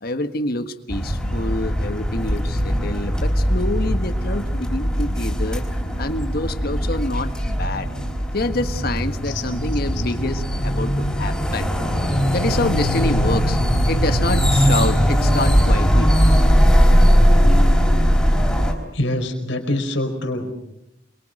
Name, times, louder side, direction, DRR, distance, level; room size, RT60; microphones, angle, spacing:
voice 1, 0.0-5.7 6.0-7.9 8.3-11.7 12.3-16.1, left 2 dB, 50° left, 8 dB, 1.6 m, -27 dB
sound 1, 0.9-18.7, equal, 5° left, 4.3 m, -19 dB
voice 2, 18.9-20.5, left 1 dB, 70° left, 5 dB, 4.7 m, -24 dB
27.5 x 23.5 x 6.6 m, 0.83 s
head